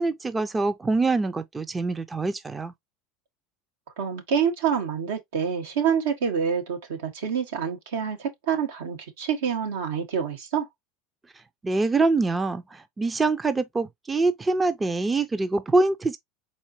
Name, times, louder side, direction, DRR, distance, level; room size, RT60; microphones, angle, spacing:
voice 1, 0.0-2.7 11.6-16.2, right 3 dB, 20° right, 0.5 m, -24 dB
voice 2, 4.0-10.7, right 7 dB, 80° right, 1.5 m, -27 dB
4.3 x 4.2 x 2.8 m
hypercardioid pair, 90°, 0 cm